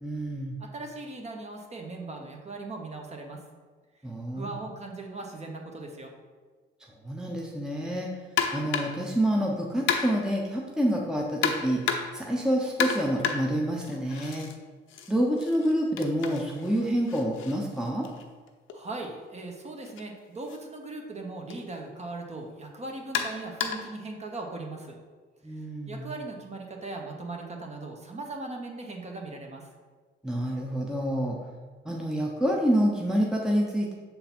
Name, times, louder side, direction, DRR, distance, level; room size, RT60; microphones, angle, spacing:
voice 1, 0.0-0.6 4.0-4.5 7.0-8.1 8.5-11.8 12.1-14.5 15.1-18.1 25.4-26.1 30.2-31.4 31.8-33.9, equal, 5° right, -1 dB, 0.8 m, -27 dB
voice 2, 0.6-3.4 4.3-6.1 18.7-25.0 25.9-29.7, right 2 dB, 35° right, 1 dB, 1.2 m, -39 dB
sound 1, 8.4-9.1 9.9-10.4 11.4-12.3 12.8-14.6 14.9-18.8 19.8-20.0 20.5-20.6 21.5-21.6 23.1-24.0, left 7 dB, 85° left, 0.7 m, -32 dB
6.8 x 3.9 x 4.4 m, 1.5 s
cardioid pair, 90°, 20 cm